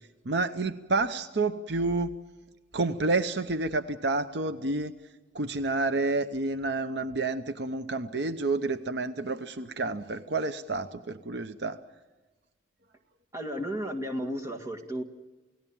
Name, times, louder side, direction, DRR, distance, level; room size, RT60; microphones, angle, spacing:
voice 1, 0.2-2.1 2.7-4.9 5.3-11.8, right 3 dB, 65° right, 10 dB, 0.9 m, -29 dB
voice 2, 13.3-15.0, equal, 15° right, 4 dB, 2.0 m, -33 dB
29.0 x 17.5 x 7.2 m, 1.2 s
head